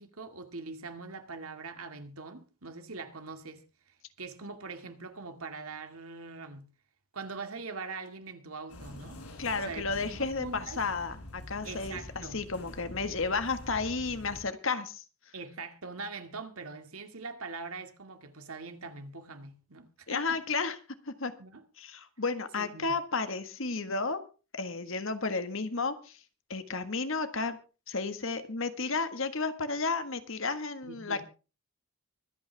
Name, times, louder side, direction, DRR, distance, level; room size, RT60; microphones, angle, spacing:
voice 1, 0.0-3.6 4.2-6.7 7.1-9.2 9.7-10.8 11.6-12.4 15.3-20.4 21.4-21.6 22.6-23.0 30.8-31.2, right 4 dB, 75° right, 2.2 m, -42 dB
sound 1, 8.7-14.4, left 1 dB, 90° left, 7.9 m, -46 dB
voice 2, 9.4-15.0 20.1-20.8 21.1-21.3 21.8-24.2 24.5-26.2 26.5-27.6 27.9-31.2, left 4 dB, 60° left, 1.6 m, -32 dB
24.0 x 8.9 x 3.4 m
head